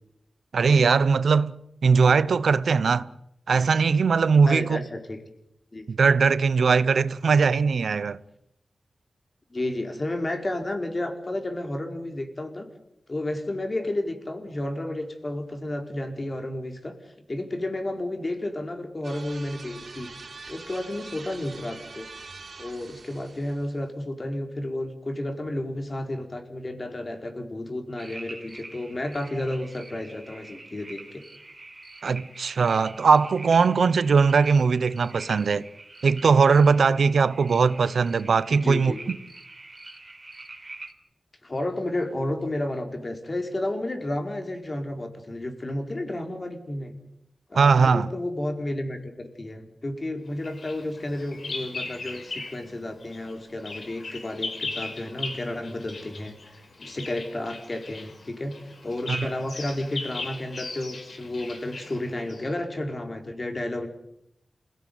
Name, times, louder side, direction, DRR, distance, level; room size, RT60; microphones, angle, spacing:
voice 1, 0.5-1.5 1.8-3.1 3.5-4.8 5.9-8.2 32.0-35.7 36.0-38.9 47.5-48.1 59.1-59.3, right 5 dB, 90° right, 0.9 m, -20 dB
voice 2, 4.5-5.2 5.7-5.8 9.5-12.7 13.1-16.9 17.3-20.1 20.5-22.1 22.6-31.2 38.6-39.0 41.4-46.9 47.5-58.5 58.8-63.9, left 1 dB, 35° left, 4.6 m, -32 dB
sound 1, 19.0-23.7, right 4 dB, 65° right, 4.0 m, -44 dB
sound 2, 28.0-40.9, right 2 dB, 30° right, 4.4 m, -45 dB
Bird vocalization bird call bird song, 50.4-52.7 53.0-62.5, left 3 dB, 70° left, 5.2 m, -38 dB
27.5 x 17.5 x 9.4 m
wide cardioid pair, 85°, 0 cm